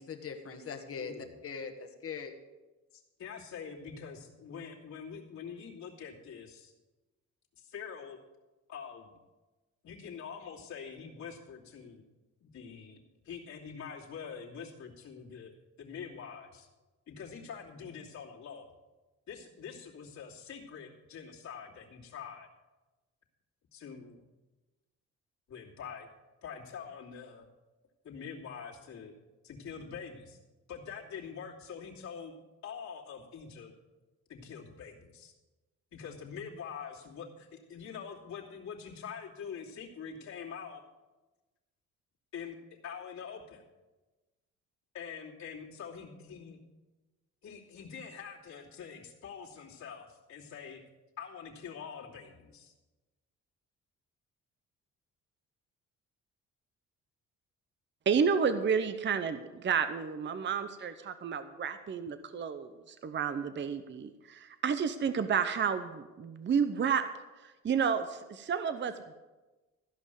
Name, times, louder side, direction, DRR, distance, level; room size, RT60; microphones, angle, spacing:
voice 1, 0.0-2.3, left 6 dB, 50° left, 1.6 m, -41 dB
voice 2, 1.0-1.4 2.9-6.7 7.6-8.2 8.7-9.2 9.8-12.0 12.4-13.0 13.2-15.5 15.8-16.7 17.1-18.7 19.3-22.5 23.7-24.2 25.5-26.1 26.4-27.5 28.0-29.1 29.4-30.4 30.7-32.3 32.6-33.7 34.3-35.3 35.9-40.8 42.3-42.6 42.8-43.6 44.9-46.6 47.4-50.8 51.2-52.7, left 6 dB, 65° left, 2.8 m, -45 dB
voice 3, 58.1-67.1 67.4-69.1, right 6 dB, 40° right, 0.7 m, -31 dB
15.0 x 5.4 x 7.9 m
cardioid pair, 90°, 30 cm